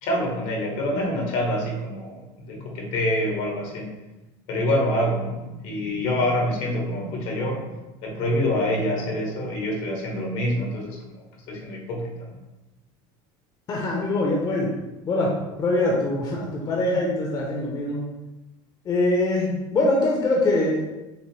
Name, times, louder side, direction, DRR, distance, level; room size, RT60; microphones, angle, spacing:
voice 1, 0.0-3.9 4.5-7.7 8.0-12.4, left 1 dB, 65° left, 0 dB, 1.2 m, -26 dB
voice 2, 13.7-14.7 15.1-15.3 15.6-18.0 18.8-20.8, left 2 dB, 35° left, -2 dB, 0.8 m, -23 dB
5.8 x 2.1 x 3.2 m, 1.0 s
supercardioid pair, 120°, 12 cm